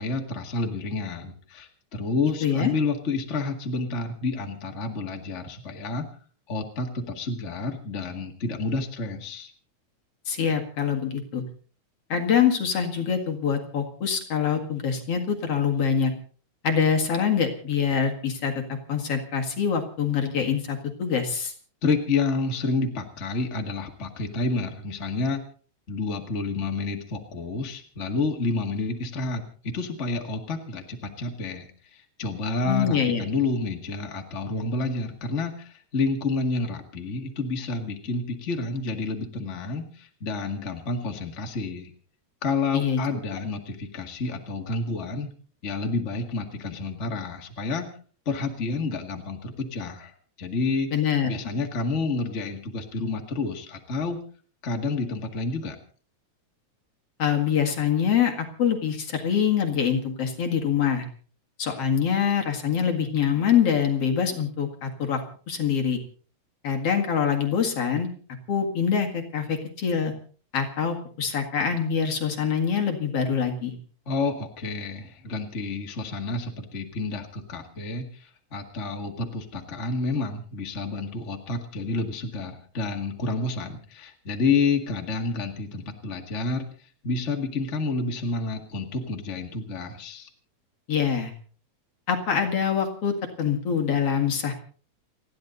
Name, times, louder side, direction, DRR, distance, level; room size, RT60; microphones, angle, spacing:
voice 1, 0.0-6.1 6.5-9.5 21.8-25.4 25.9-41.9 42.4-45.3 45.6-47.9 48.3-50.9 51.3-54.2 54.6-55.8 74.1-90.3, left 3 dB, 25° left, 3 dB, 1.9 m, -29 dB
voice 2, 2.4-2.7 10.3-11.4 12.1-16.1 16.6-21.5 32.7-33.2 42.7-43.0 50.9-51.3 57.2-61.1 61.6-65.2 65.5-66.0 66.6-68.1 68.5-70.1 70.5-73.8 90.9-91.3 92.1-94.5, left 7 dB, 55° left, 3 dB, 2.8 m, -24 dB
29.5 x 10.5 x 4.0 m, 0.43 s
omnidirectional pair, 3.3 m